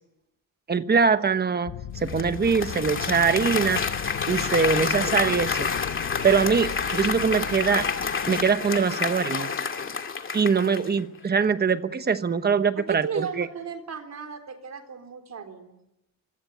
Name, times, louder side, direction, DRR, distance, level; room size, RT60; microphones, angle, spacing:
voice 1, 0.7-3.8 4.3-5.7 6.2-7.8 8.3-9.5 10.3-13.5, right 5 dB, 30° right, 10 dB, 1.1 m, -23 dB
sound 1, 1.7-9.4, left 10 dB, 75° left, 1.2 m, -38 dB
Applause, 2.1-11.0, left 5 dB, 35° left, 2.5 m, -29 dB
voice 2, 12.8-15.8, right 6 dB, 50° right, 5 dB, 3.8 m, -35 dB
26.0 x 24.0 x 9.3 m, 0.87 s
wide cardioid pair, 175°, 35 cm